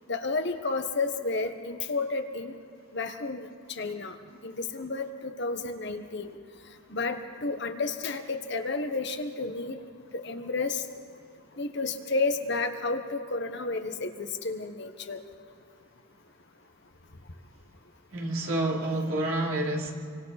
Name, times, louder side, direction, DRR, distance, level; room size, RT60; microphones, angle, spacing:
voice 1, 0.1-2.5 2.9-3.4 3.8-4.1 4.4-6.3 6.9-7.1 7.4-9.8 10.2-10.8 11.6-15.2, left 3 dB, 55° left, 1.3 m, -31 dB
voice 2, 18.1-19.9, right 1 dB, 80° right, 3.1 m, -28 dB
27.5 x 25.0 x 4.2 m
head